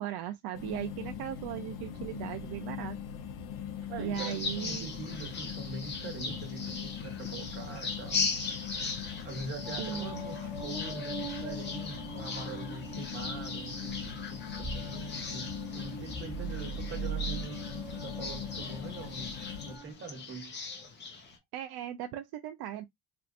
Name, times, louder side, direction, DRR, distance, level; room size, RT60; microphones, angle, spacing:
voice 1, 0.0-3.0 4.0-4.9 9.8-10.2 21.5-22.8, right 12 dB, 60° right, 0.5 m, -37 dB
sound 1, 0.5-19.8, left 8 dB, 75° left, 0.9 m, -41 dB
voice 2, 3.9-8.2 9.2-19.4 19.6-20.6, right 3 dB, 25° right, 1.2 m, -43 dB
sound 2, 4.1-21.4, left 4 dB, 25° left, 0.8 m, -39 dB
sound 3, 9.6-19.9, right 4 dB, 10° right, 0.8 m, -42 dB
4.5 x 2.5 x 2.4 m
cardioid pair, 175°, 43 cm